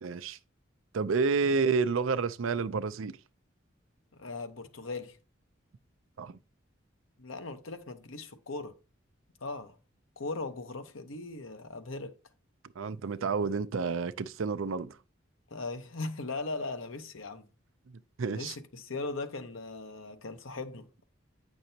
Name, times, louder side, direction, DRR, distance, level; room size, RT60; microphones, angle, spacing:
voice 1, 0.0-0.4 0.9-3.1 6.2-6.4 12.8-15.0 18.2-18.5, right 4 dB, 90° right, 0.5 m, -29 dB
voice 2, 4.2-5.2 7.2-8.8 9.4-9.8 10.2-12.2 15.5-17.5 18.3-21.0, left 3 dB, 90° left, 1.1 m, -39 dB
8.9 x 6.2 x 2.8 m
head